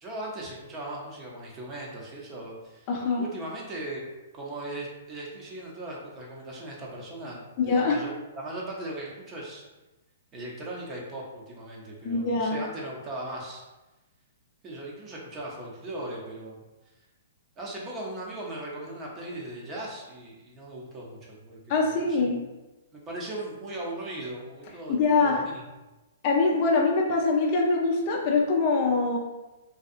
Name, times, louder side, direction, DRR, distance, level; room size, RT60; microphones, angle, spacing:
voice 1, 0.0-2.9 3.2-4.1 4.3-8.1 8.4-9.6 10.3-13.6 14.6-16.6 17.6-21.9 22.2-22.3 22.9-25.5, right 1 dB, 25° right, -3 dB, 0.6 m, -38 dB
voice 2, 2.9-3.3 7.6-8.1 12.0-12.6 21.7-22.4 24.9-25.5 26.2-29.2, left 3 dB, 40° left, 0 dB, 0.4 m, -24 dB
2.7 x 2.2 x 2.5 m, 1.1 s
hypercardioid pair, 140°, 0 cm